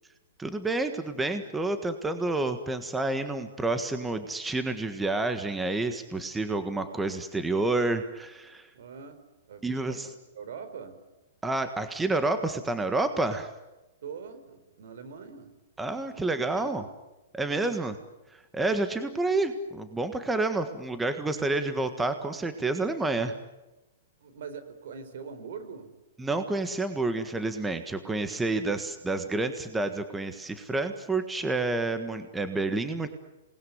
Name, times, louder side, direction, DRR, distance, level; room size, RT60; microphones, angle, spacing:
voice 1, 0.4-8.7 9.6-10.1 11.4-13.5 15.8-16.9 17.3-17.9 18.3-23.4 26.2-33.1, right 2 dB, 10° right, 8 dB, 1.6 m, -29 dB
voice 2, 8.7-9.2 9.5-10.0 10.3-11.0 14.0-15.5 16.2-16.8 17.4-17.7 20.4-20.5 24.2-25.9 28.3-28.7, right 6 dB, 70° right, 10 dB, 4.3 m, -43 dB
27.5 x 20.5 x 9.6 m, 1.0 s
hypercardioid pair, 145°, 0 cm